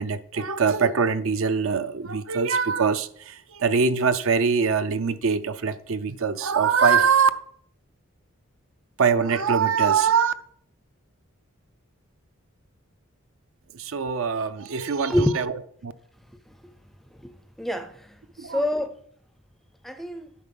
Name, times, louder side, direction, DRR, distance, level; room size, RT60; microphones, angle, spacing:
voice 1, 0.0-7.3 9.0-10.3 13.7-15.5 15.8-15.9 18.4-18.6, right 6 dB, 70° right, 0.5 m, -23 dB
voice 2, 17.6-19.0 19.8-20.3, left 1 dB, ahead, 0.5 m, -26 dB
9.5 x 5.8 x 5.3 m
head